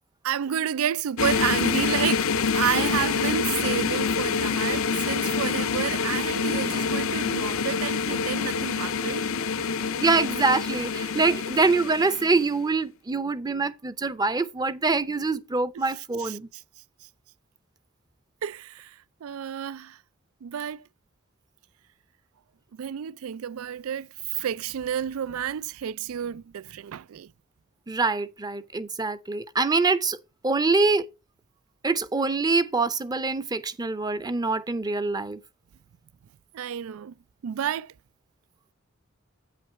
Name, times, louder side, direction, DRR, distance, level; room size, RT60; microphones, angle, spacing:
voice 1, 0.2-9.2 16.2-16.4 18.4-18.9 19.2-20.0 20.4-20.8 22.7-27.3 36.5-37.1 37.4-37.9, right 9 dB, 90° right, 0.4 m, -30 dB
sound 1, 1.2-12.5, left 5 dB, 70° left, 0.6 m, -26 dB
voice 2, 10.0-16.5 27.9-30.2 30.4-31.1 31.8-35.4, right 3 dB, 20° right, 0.6 m, -25 dB
8.7 x 5.9 x 4.5 m
head